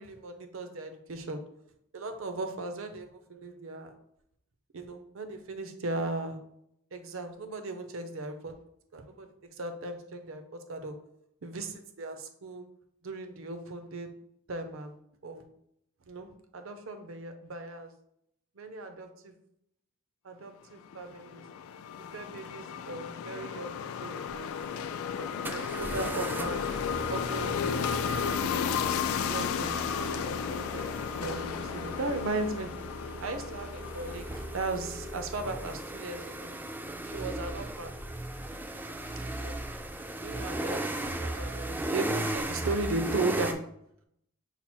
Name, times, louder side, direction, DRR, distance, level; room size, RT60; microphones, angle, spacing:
voice 1, 0.0-1.4 1.9-3.9 4.7-6.4 6.9-8.5 8.9-10.4 10.7-10.9 11.4-12.6 13.0-14.1 14.5-15.0 15.2-15.4 16.1-17.9 18.6-19.3 20.2-21.4 22.1-24.5 25.1-26.7 27.1-28.8 29.3-30.9 31.2-32.7 33.2-34.3 34.5-36.5 37.0-37.9 39.3-39.5 40.2-43.6, right 2 dB, 70° right, 7 dB, 0.6 m, -37 dB
sound 1, 20.9-35.3, left 7 dB, 80° left, 0.3 m, -34 dB
sound 2, 24.3-24.4 25.4-43.5, right 1 dB, 10° right, 0.3 m, -37 dB
5.8 x 2.0 x 4.3 m, 0.73 s
head